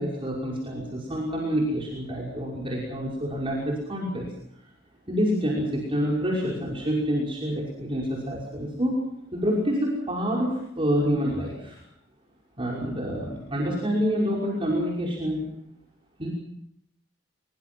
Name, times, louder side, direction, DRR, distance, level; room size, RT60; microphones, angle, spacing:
voice 1, 0.0-4.3 5.1-9.0 9.3-11.8 12.6-15.5 16.2-16.3, equal, 30° right, -3 dB, 5.6 m, -27 dB
24.0 x 24.0 x 6.1 m, 0.77 s
head